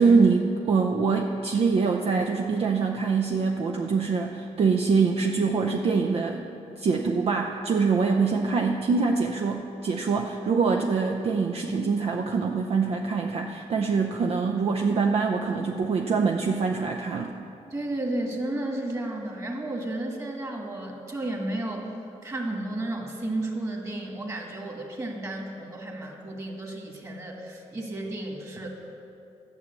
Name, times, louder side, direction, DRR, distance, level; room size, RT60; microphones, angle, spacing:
voice 1, 0.0-6.4 6.8-17.3, right 4 dB, 55° right, 2 dB, 0.6 m, -24 dB
voice 2, 17.7-21.9 22.2-28.7, right 1 dB, 25° right, 1 dB, 2.1 m, -33 dB
11.5 x 6.2 x 8.2 m, 2.7 s
cardioid pair, 90°, 12 cm